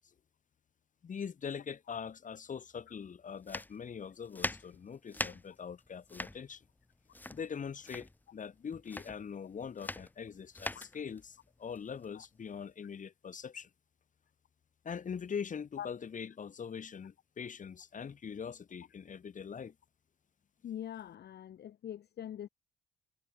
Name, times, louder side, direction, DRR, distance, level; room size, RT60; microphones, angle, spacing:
voice 1, 1.0-6.6 7.3-13.7 14.8-19.7, left 7 dB, 40° left, 1.4 m, -42 dB
sound 1, 3.4-12.7, left 2 dB, 10° left, 0.9 m, -42 dB
voice 2, 20.6-22.5, left 10 dB, 55° left, 0.9 m, -43 dB
cardioid pair, 90°, 20 cm